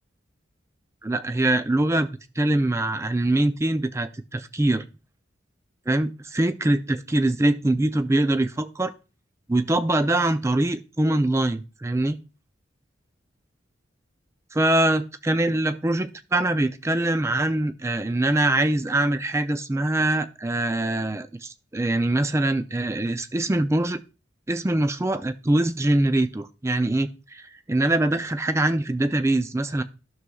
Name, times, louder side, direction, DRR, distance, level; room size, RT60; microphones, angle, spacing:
voice 1, 1.0-2.1 2.4-4.8 5.9-8.9 9.5-12.2 14.5-24.0 24.5-27.4 27.7-29.8, right 1 dB, 15° right, 11 dB, 0.4 m, -23 dB
12.5 x 6.3 x 2.3 m, 0.32 s
head